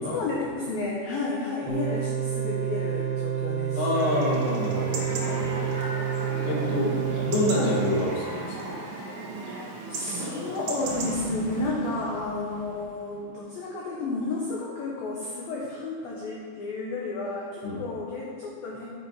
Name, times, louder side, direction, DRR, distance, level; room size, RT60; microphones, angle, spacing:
voice 1, 0.1-3.8 7.5-7.8 9.2-18.9, left 3 dB, 80° left, -3 dB, 2.0 m, -32 dB
sound 1, 1.7-8.0, right 9 dB, 90° right, 1.8 m, -29 dB
voice 2, 3.8-5.8 6.5-6.9 7.2-8.7 17.6-17.8, left 2 dB, 65° left, -3 dB, 3.7 m, -28 dB
Chatter / Livestock farm animals working animals / Chirp tweet, 3.9-11.1, right 2 dB, 75° right, 1.8 m, -35 dB
Bird, 6.5-7.9 10.8-13.3, left 1 dB, 15° right, 1.4 m, -40 dB
9.6 x 8.1 x 4.8 m, 2.2 s
omnidirectional pair, 5.9 m